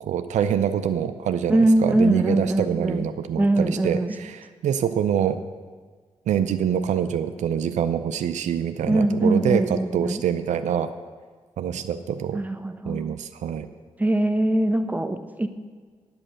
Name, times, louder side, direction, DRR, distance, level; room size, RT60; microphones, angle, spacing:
voice 1, 0.0-5.4 6.3-10.9 11.6-12.4 12.9-13.7, right 9 dB, 80° right, 10 dB, 0.5 m, -25 dB
voice 2, 1.5-3.1 3.4-4.2 8.9-10.2 12.3-13.1 14.0-15.5, right 1 dB, 15° right, 8 dB, 1.0 m, -22 dB
8.9 x 8.8 x 6.3 m, 1.5 s
supercardioid pair, 45°, 12 cm